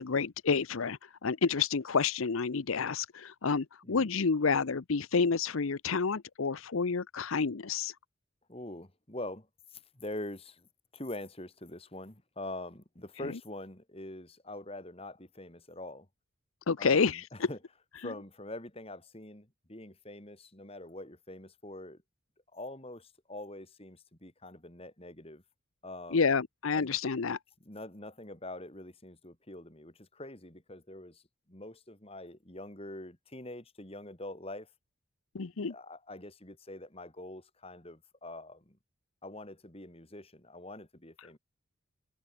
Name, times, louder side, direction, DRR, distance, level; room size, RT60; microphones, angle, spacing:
voice 1, 0.0-7.9 16.7-17.5 26.1-27.4 35.3-35.7, left 5 dB, 75° left, 0.7 m, -29 dB
voice 2, 8.5-9.5 9.7-16.1 16.8-17.6 18.0-22.0 22.5-25.4 25.8-26.3 26.7-27.0 27.6-31.2 31.5-34.7 35.5-38.8 39.2-41.4, left 1 dB, 25° left, 2.7 m, -44 dB
head